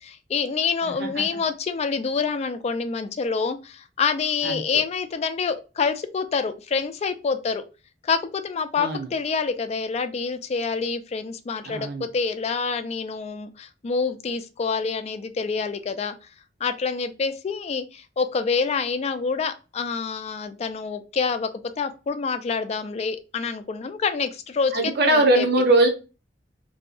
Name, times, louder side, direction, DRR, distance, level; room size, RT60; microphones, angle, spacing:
voice 1, 0.0-7.6 8.0-16.1 16.6-21.5 21.8-25.5, left 5 dB, 35° left, 10 dB, 0.3 m, -27 dB
voice 2, 0.8-1.2 4.4-4.6 8.8-9.1 11.7-12.1 24.7-25.9, right 2 dB, 60° right, 4 dB, 0.7 m, -21 dB
2.7 x 2.3 x 2.4 m, 0.31 s
head